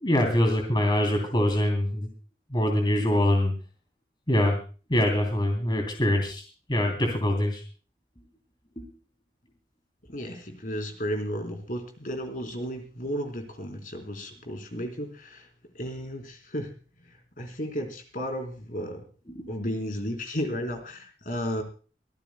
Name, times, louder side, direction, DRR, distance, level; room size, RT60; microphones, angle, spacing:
voice 1, 0.0-2.1 2.5-3.5 4.3-4.5 4.9-6.4 6.7-7.6 8.8-8.9 19.3-19.5, left 1 dB, 25° left, 3 dB, 3.1 m, -24 dB
voice 2, 10.1-15.5 15.7-16.7 17.1-19.1 19.5-21.6, equal, 50° left, 5 dB, 3.8 m, -33 dB
24.5 x 14.5 x 2.2 m, 0.36 s
head